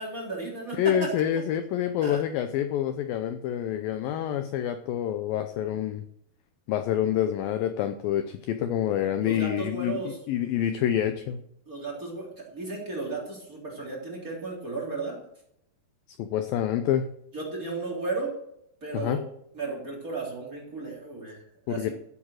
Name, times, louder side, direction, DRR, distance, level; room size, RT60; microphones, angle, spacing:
voice 1, 0.0-1.1 2.0-2.2 9.2-10.2 11.7-15.2 17.3-18.3 18.8-19.3 19.5-21.9, right 3 dB, 20° right, -2 dB, 3.6 m, -34 dB
voice 2, 0.7-6.0 6.7-10.0 10.3-11.4 16.2-17.1 18.9-19.2 21.7-21.9, left 10 dB, 80° left, 8 dB, 2.2 m, -27 dB
14.5 x 8.3 x 6.4 m, 0.75 s
omnidirectional pair, 4.8 m